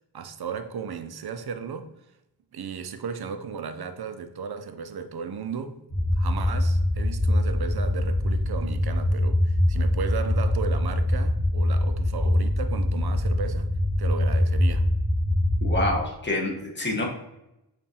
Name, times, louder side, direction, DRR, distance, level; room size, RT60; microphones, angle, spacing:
voice 1, 0.1-1.9 2.5-5.8 6.2-14.8, right 6 dB, 65° right, 0.5 m, -35 dB
sound 1, 5.9-15.9, left 1 dB, 45° left, 1.3 m, -23 dB
voice 2, 15.6-17.1, left 1 dB, 25° left, 1.1 m, -27 dB
7.3 x 2.5 x 2.8 m
wide cardioid pair, 65°, 41 cm